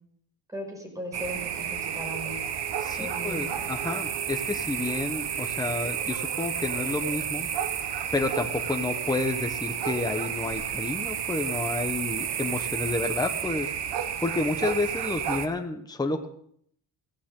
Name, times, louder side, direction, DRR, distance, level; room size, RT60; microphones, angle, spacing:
voice 1, 0.5-2.4 3.0-3.7, equal, 10° right, 2 dB, 5.7 m, -37 dB
sound 1, 1.1-15.5, right 8 dB, 75° right, 1.3 m, -31 dB
voice 2, 2.8-7.5 8.1-13.7 14.2-16.3, left 2 dB, 10° left, 5 dB, 1.1 m, -30 dB
16.5 x 15.5 x 3.8 m, 0.64 s
cardioid pair, 120°, 42 cm